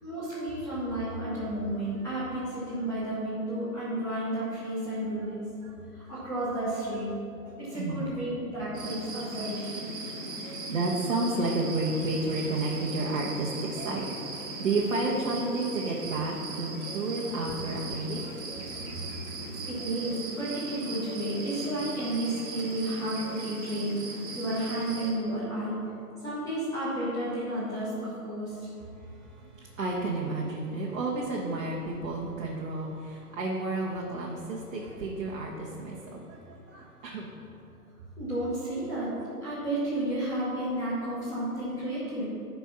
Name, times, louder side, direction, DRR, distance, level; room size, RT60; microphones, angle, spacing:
voice 1, 0.0-5.5 5.9-7.1 7.6-9.9 19.5-24.0 24.3-25.8 26.2-28.7 38.2-39.1 39.4-42.2, right 1 dB, 5° left, -12 dB, 1.6 m, -32 dB
voice 2, 7.4-8.0 10.3-18.3 18.7-19.0 28.9-37.5, right 2 dB, 55° right, -3 dB, 1.4 m, -32 dB
sound 1, 8.7-25.1, right 3 dB, 30° right, 1.7 m, -38 dB
11.5 x 4.6 x 5.7 m, 2.6 s
hypercardioid pair, 145°, 48 cm